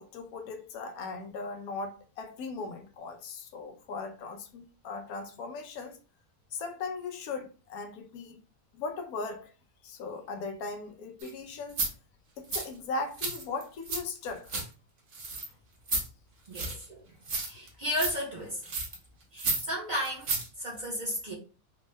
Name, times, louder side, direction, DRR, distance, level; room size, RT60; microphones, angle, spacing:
voice 1, 0.0-6.0 6.5-8.4 8.8-9.5 9.8-11.8 12.4-14.5, left 3 dB, 75° left, 1.0 m, -38 dB
sound 1, 11.2-11.3 11.7-11.9 12.5-12.7 13.1-14.0 14.3-14.6 15.1-15.5 15.9-16.1 16.5-16.8 17.2-17.7 17.9-18.1 18.6-19.0 19.4-19.7 20.0-20.5 20.8-20.9, right 3 dB, 55° right, 1.1 m, -32 dB
voice 2, 16.5-17.2 17.4-18.6 19.3-21.3, equal, 40° right, 0.8 m, -34 dB
3.5 x 2.1 x 3.2 m
omnidirectional pair, 1.6 m